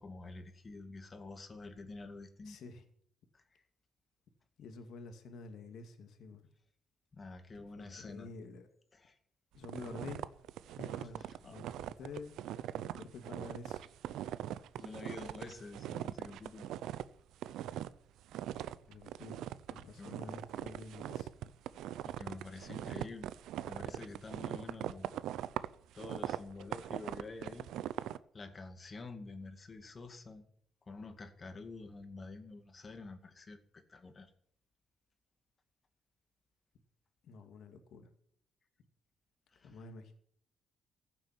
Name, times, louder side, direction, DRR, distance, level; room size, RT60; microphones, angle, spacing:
voice 1, 0.0-2.6 3.3-3.6 7.1-8.3 8.9-9.2 11.4-11.7 14.8-16.7 20.0-20.2 22.0-23.3 23.7-25.1 25.9-27.7 28.3-30.4 30.9-34.3 39.5-39.8, left 3 dB, 35° left, 8 dB, 2.2 m, -48 dB
voice 2, 2.4-2.8 4.6-6.5 7.5-8.7 9.5-10.3 10.7-12.4 12.8-13.8 18.9-19.4 19.7-21.3 37.2-38.1 39.6-40.1, left 4 dB, 75° left, 7 dB, 2.2 m, -49 dB
sound 1, 9.6-17.1 17.3-18.0 18.3-28.2, right 12 dB, 85° right, 0.6 m, -41 dB
15.0 x 7.6 x 9.1 m, 0.63 s
cardioid pair, 90°, 0 cm